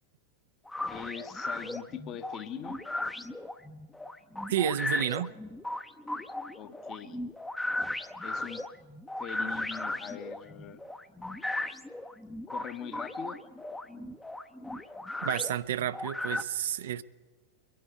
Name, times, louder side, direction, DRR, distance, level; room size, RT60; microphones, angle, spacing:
sound 1, 0.7-16.4, left 1 dB, 5° left, 0.6 m, -36 dB
voice 1, 0.9-2.8 6.6-7.2 8.2-8.6 9.2-10.8 12.5-13.4, left 8 dB, 30° left, 0.9 m, -42 dB
voice 2, 4.5-5.3 15.2-17.0, right 11 dB, 60° right, 0.5 m, -30 dB
22.5 x 11.0 x 4.6 m
figure-of-eight pair, 90°, 0 cm